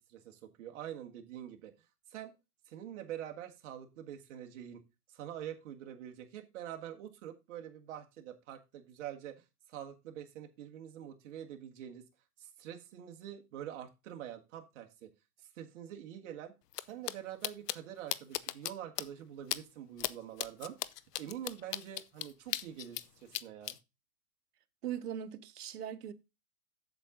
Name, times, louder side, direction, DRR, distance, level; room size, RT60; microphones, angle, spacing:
voice 1, 0.0-1.7 2.1-2.3 2.7-4.8 5.1-9.3 9.7-12.0 12.4-15.1 15.6-16.5 16.8-20.8 21.2-23.8, right 10 dB, 50° right, 1.8 m, -45 dB
sound 1, 16.7-16.8 17.1-17.2 17.4-17.8 18.1-18.7 19.0-19.1 19.5-19.6 20.0-20.1 20.4-23.0 23.3-23.7, left 13 dB, 80° left, 0.8 m, -35 dB
voice 2, 24.8-26.1, right 10 dB, 70° right, 1.3 m, -40 dB
8.1 x 7.3 x 3.8 m
hypercardioid pair, 155°, 47 cm